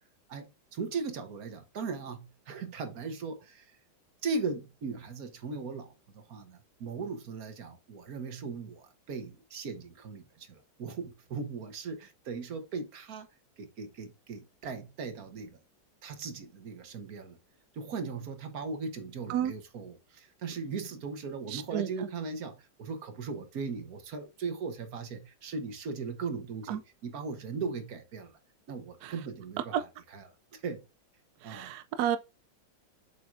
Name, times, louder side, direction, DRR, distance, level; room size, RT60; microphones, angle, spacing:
voice 1, 0.3-3.8 4.2-13.3 13.6-15.6 16.0-17.4 17.7-28.4 28.7-29.8 30.1-30.3 30.5-30.8 31.4-31.7, right 4 dB, 50° right, 1.5 m, -38 dB
voice 2, 21.5-21.9 26.7-26.8 29.0-29.1 29.7-29.8 31.4-32.2, right 10 dB, 85° right, 0.8 m, -31 dB
7.7 x 5.6 x 2.6 m
omnidirectional pair, 2.3 m